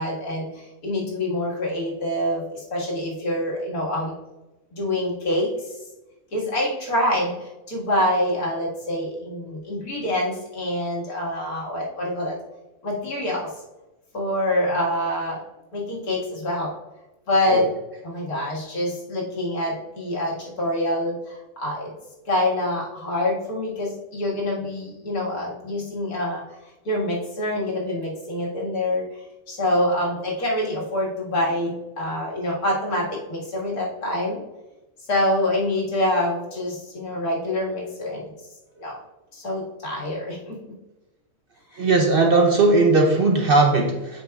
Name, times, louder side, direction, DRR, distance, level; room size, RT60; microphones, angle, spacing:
voice 1, 0.0-4.1 4.7-5.8 6.3-12.4 12.8-13.5 14.1-15.4 15.7-16.7 17.3-17.7 18.0-21.9 22.3-26.4 26.9-34.4 35.1-38.3 38.8-39.0 39.3-40.6 41.7-41.8, left 1 dB, 85° left, -4 dB, 2.2 m, -26 dB
voice 2, 41.8-44.2, right 3 dB, 50° right, 2 dB, 0.7 m, -18 dB
8.5 x 6.0 x 2.3 m, 1.0 s
omnidirectional pair, 1.5 m